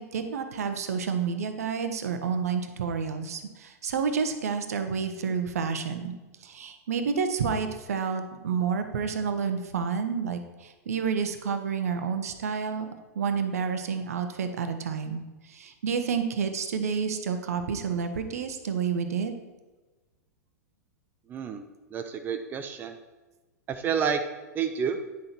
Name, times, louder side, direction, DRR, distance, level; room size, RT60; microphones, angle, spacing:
voice 1, 0.0-6.1 6.4-12.9 13.1-19.4, right 6 dB, 60° right, 8 dB, 1.0 m, -29 dB
voice 2, 21.3-21.6 21.9-23.0 23.7-24.2 24.5-25.0, right 7 dB, 20° right, 6 dB, 0.6 m, -29 dB
9.8 x 6.4 x 4.5 m, 1.2 s
figure-of-eight pair, 100°, 9 cm